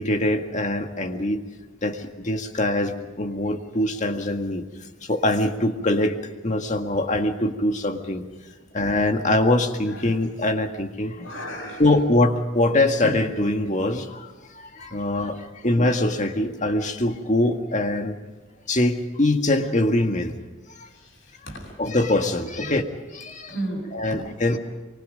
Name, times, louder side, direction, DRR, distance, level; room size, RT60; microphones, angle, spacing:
voice 1, 0.0-1.4 1.8-4.6 5.0-6.2 6.4-8.2 8.7-11.3 11.8-14.3 14.5-18.1 18.7-20.4 20.8-20.9 21.8-22.8 23.1-23.5 23.9-24.6, left 1 dB, 35° left, 5 dB, 1.8 m, -23 dB
voice 2, 11.2-11.9 20.9-21.7 22.6-22.8 23.5-24.2, right 1 dB, 70° left, 2 dB, 7.9 m, -34 dB
25.0 x 24.5 x 5.2 m, 1.3 s
head